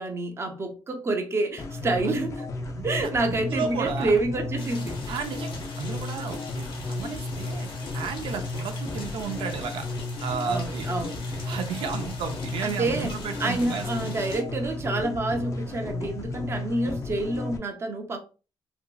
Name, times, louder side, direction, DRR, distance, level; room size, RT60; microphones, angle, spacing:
voice 1, 0.0-5.4 10.5-11.4 12.6-18.2, right 2 dB, 30° right, 0.5 m, -28 dB
sound 1, 1.6-17.6, left 2 dB, 35° left, 0.4 m, -33 dB
voice 2, 2.7-4.2 5.1-7.7 7.9-9.9 10.2-10.9 11.5-14.1, right 6 dB, 85° right, 0.4 m, -33 dB
sound 2, 4.6-14.4, left 3 dB, 85° left, 0.8 m, -43 dB
2.8 x 2.5 x 2.2 m
wide cardioid pair, 150°, 9 cm